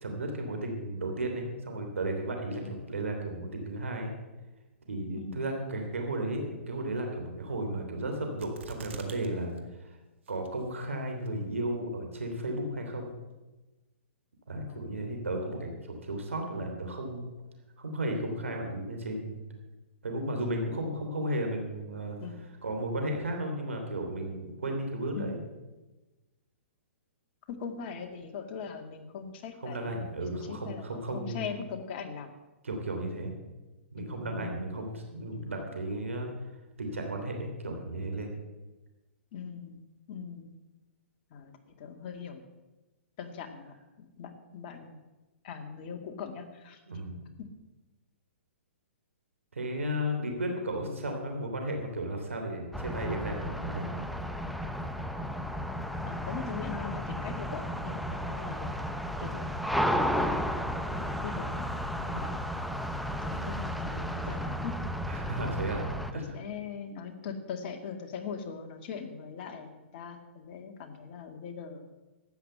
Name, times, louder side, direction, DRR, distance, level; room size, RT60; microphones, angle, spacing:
voice 1, 0.0-4.1 4.9-9.5 9.8-10.0 10.3-13.1 14.5-17.2 17.8-19.4 20.0-22.2 22.6-25.4 29.6-31.4 32.6-33.3 33.9-36.3 36.8-38.3 46.9-47.2 49.5-53.9 62.1-62.3 65.1-65.8 66.1-66.4, right 1 dB, 90° right, 3 dB, 3.2 m, -34 dB
voice 2, 2.6-2.9 5.2-5.4 14.7-14.8 22.2-22.4 25.1-25.3 27.5-32.3 34.0-34.6 35.3-35.8 39.3-39.8 40.1-40.5 41.3-41.5 41.8-42.4 43.2-45.0 45.4-46.8 50.8-51.2 56.1-58.9 59.2-59.6 60.0-61.6 62.0-62.4 63.2-64.8 66.1-71.9, left 6 dB, 45° left, 4 dB, 2.1 m, -41 dB
sound 1, 8.4-9.3 9.6-9.7 10.3-10.7 11.3-11.4, right 4 dB, 70° right, 1.9 m, -43 dB
sound 2, 52.7-66.1, equal, ahead, 0.7 m, -33 dB
13.0 x 9.1 x 7.8 m, 1.1 s
hypercardioid pair, 135°, 7 cm